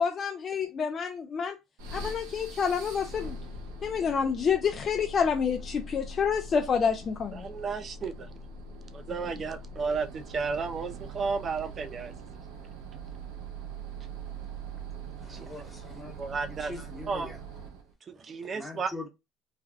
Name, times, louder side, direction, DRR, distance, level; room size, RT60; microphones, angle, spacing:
voice 1, 0.0-1.6 1.9-3.4 3.8-7.5, left 6 dB, 40° left, 0.4 m, -28 dB
sound 1, 1.8-17.9, right 2 dB, 85° right, 0.7 m, -42 dB
voice 2, 7.3-8.3 8.9-12.1 15.3-15.5 16.1-16.7 17.1-17.3 18.1-18.9, right 5 dB, 40° right, 0.5 m, -33 dB
voice 3, 15.2-16.2 16.6-17.4 18.5-19.1, left 2 dB, 10° left, 1.2 m, -42 dB
3.3 x 2.2 x 2.4 m
supercardioid pair, 90°, 0 cm